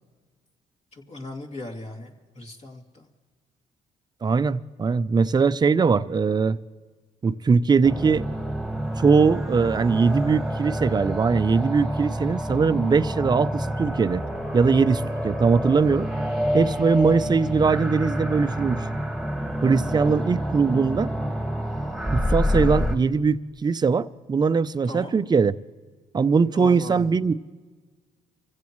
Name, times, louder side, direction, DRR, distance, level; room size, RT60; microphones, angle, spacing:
voice 1, 0.9-3.1 24.8-25.2 26.5-27.1, left 2 dB, 45° left, 2.7 m, -38 dB
voice 2, 4.2-6.6 7.2-8.3 9.0-14.2 14.5-16.1 16.5-18.8 19.6-21.1 22.1-25.5 26.1-27.3, right 5 dB, 25° right, 0.6 m, -21 dB
sound 1, 7.8-23.0, equal, ahead, 1.8 m, -28 dB
26.5 x 16.0 x 3.1 m
cardioid pair, 95°, 16 cm